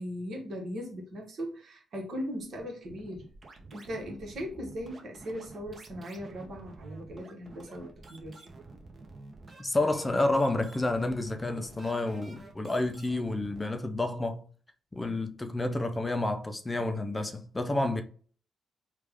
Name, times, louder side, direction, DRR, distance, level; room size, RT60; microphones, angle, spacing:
voice 1, 0.0-3.3 3.7-8.5, equal, 65° right, 1.4 m, -39 dB
sound 1, 2.4-13.6, right 3 dB, 45° right, 1.0 m, -49 dB
voice 2, 9.6-14.4 14.9-18.0, left 2 dB, 20° left, 0.5 m, -29 dB
3.2 x 2.4 x 3.5 m
supercardioid pair, 60°, 0 cm